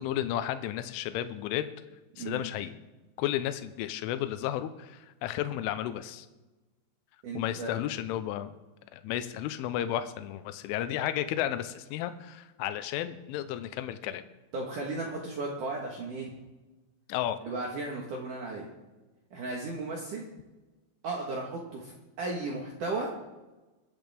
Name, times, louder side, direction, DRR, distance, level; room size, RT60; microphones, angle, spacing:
voice 1, 0.0-1.7 2.2-2.8 3.2-6.3 7.3-8.5 8.9-14.2 17.1-17.4, left 12 dB, 80° left, 10 dB, 3.1 m, -33 dB
voice 2, 7.2-7.7 14.5-16.3 17.4-18.7 19.3-20.3 21.0-21.9 22.2-23.1, right 3 dB, 70° right, -1 dB, 1.9 m, -35 dB
22.5 x 9.1 x 3.5 m, 1.1 s
omnidirectional pair, 5.9 m